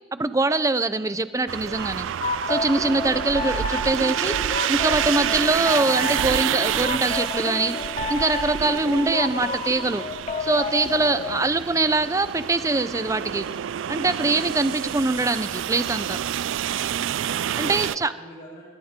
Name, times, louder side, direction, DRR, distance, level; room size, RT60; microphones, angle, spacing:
voice 1, 0.1-2.1 2.5-4.4 4.7-7.8 8.1-10.0 10.4-13.5 13.9-16.2 17.6-18.1, right 2 dB, 15° right, 13 dB, 0.6 m, -23 dB
sound 1, 1.5-18.0, right 10 dB, 90° right, 0.4 m, -29 dB
sound 2, 2.2-11.5, left 2 dB, 35° left, 1.0 m, -30 dB
voice 2, 2.8-3.2 11.0-11.3 17.1-18.6, equal, 50° left, -7 dB, 5.7 m, -44 dB
20.0 x 19.0 x 3.7 m, 1.4 s
head